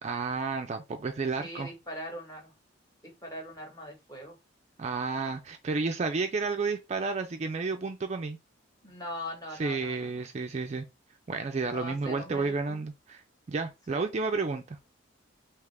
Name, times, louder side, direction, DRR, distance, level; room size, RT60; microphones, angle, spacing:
voice 1, 0.0-1.7 4.8-8.4 9.6-10.8 11.3-13.2 13.5-14.8, right 4 dB, 35° right, 0.3 m, -31 dB
voice 2, 1.4-2.5 3.0-4.4 8.8-10.2 11.6-12.8 13.9-14.0, left 1 dB, 20° left, 1.2 m, -41 dB
3.6 x 2.9 x 3.2 m
head